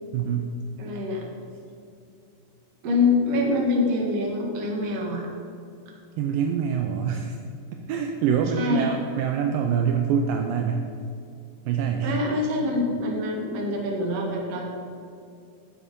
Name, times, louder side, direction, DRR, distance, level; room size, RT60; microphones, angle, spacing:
voice 1, 0.1-0.5 6.2-7.4 7.9-10.9 11.7-12.2, right 7 dB, 80° right, 4 dB, 2.0 m, -25 dB
voice 2, 0.8-1.3 2.8-5.3 8.6-8.9 12.0-14.6, left 2 dB, 50° right, 0 dB, 2.2 m, -25 dB
14.5 x 6.9 x 5.2 m, 2.4 s
omnidirectional pair, 4.7 m